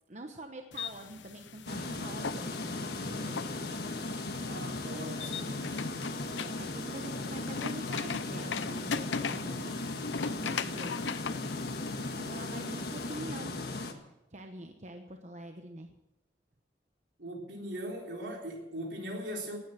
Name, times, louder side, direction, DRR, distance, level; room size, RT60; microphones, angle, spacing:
voice 1, 0.1-3.8 6.4-11.2 12.1-13.6 13.9-14.0 14.3-16.0, right 1 dB, 40° right, 4 dB, 1.0 m, -45 dB
sound 1, 0.7-13.2, left 5 dB, 90° left, 0.7 m, -40 dB
sound 2, 1.7-13.9, left 2 dB, 60° left, 1.6 m, -37 dB
voice 2, 4.4-5.8 17.2-19.6, equal, 75° right, 0 dB, 3.8 m, -40 dB
18.0 x 9.3 x 7.4 m, 0.97 s
head